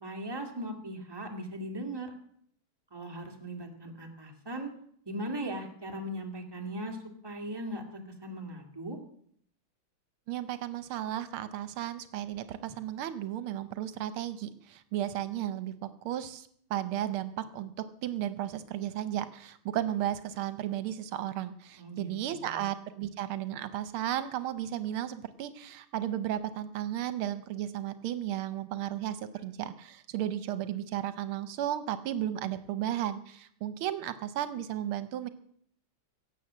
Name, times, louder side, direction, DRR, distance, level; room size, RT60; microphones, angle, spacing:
voice 1, 0.0-2.1 2.9-4.7 5.1-7.0 7.2-9.0 21.8-22.6, right 1 dB, 10° right, 2 dB, 1.9 m, -39 dB
voice 2, 10.3-17.7 18.0-35.3, right 11 dB, 80° right, 12 dB, 1.6 m, -34 dB
17.0 x 7.6 x 7.5 m, 0.65 s
omnidirectional pair, 2.3 m